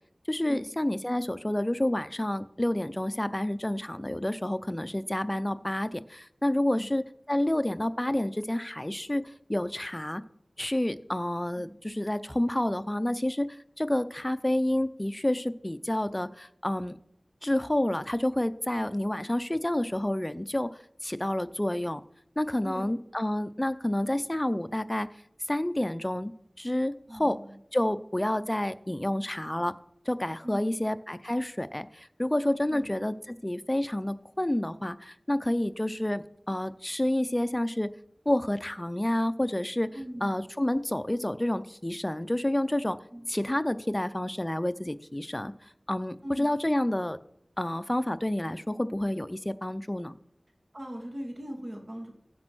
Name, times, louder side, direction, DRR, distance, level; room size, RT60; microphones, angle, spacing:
voice 1, 0.3-10.2 10.6-17.0 17.4-20.7 21.0-22.0 22.4-25.1 25.5-26.3 26.6-27.4 27.7-29.7 30.1-37.9 38.3-43.0 43.3-47.2 47.6-50.2, left 1 dB, 20° left, 13 dB, 0.5 m, -29 dB
voice 2, 22.6-22.9 27.1-27.6 30.4-30.9 32.7-33.0 39.9-40.4 43.1-43.3 46.2-46.5 50.7-52.1, equal, 55° right, 2 dB, 2.4 m, -40 dB
15.0 x 5.3 x 6.1 m, 0.74 s
wide cardioid pair, 50°, 0 cm